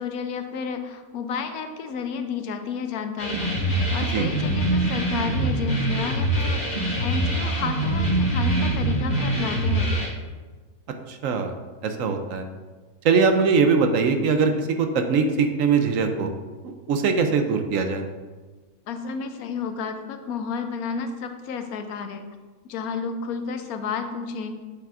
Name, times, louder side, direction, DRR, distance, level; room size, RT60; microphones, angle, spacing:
voice 1, 0.0-9.9 18.9-22.3 22.7-24.6, left 5 dB, 80° left, 7 dB, 1.1 m, -31 dB
sound 1, 3.2-10.1, right 1 dB, 35° left, 2.0 m, -24 dB
voice 2, 11.1-11.5 11.8-12.5 13.0-16.3 16.6-18.0, right 5 dB, 70° right, 6 dB, 0.9 m, -21 dB
8.2 x 5.8 x 2.5 m, 1.3 s
omnidirectional pair, 1.5 m